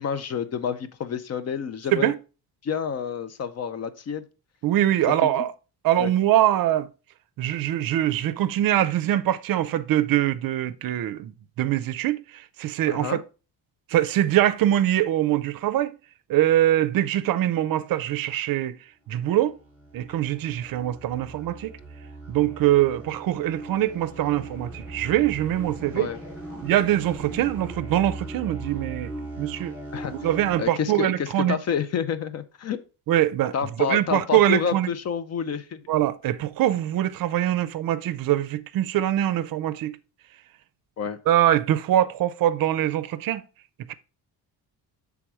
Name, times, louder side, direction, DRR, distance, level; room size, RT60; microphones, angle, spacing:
voice 1, 0.0-2.1 2.6-4.2 5.2-5.5 6.0-6.1 12.9-13.2 25.9-26.2 29.9-30.3 30.6-32.8 33.5-35.8 41.0-41.2, left 7 dB, 40° left, 0.5 m, -29 dB
voice 2, 4.6-5.5 5.8-6.9 7.4-11.3 11.6-13.2 13.9-15.9 16.3-18.8 19.1-19.5 19.9-21.7 22.3-26.1 26.6-29.1 29.4-29.7 30.2-31.6 33.1-33.5 33.9-34.9 35.9-39.9 41.3-43.4 43.9-44.0, right 13 dB, 60° right, 0.5 m, -23 dB
sound 1, 19.2-30.6, right 2 dB, 5° right, 3.1 m, -39 dB
7.4 x 3.5 x 4.7 m
cardioid pair, 160°, 40 cm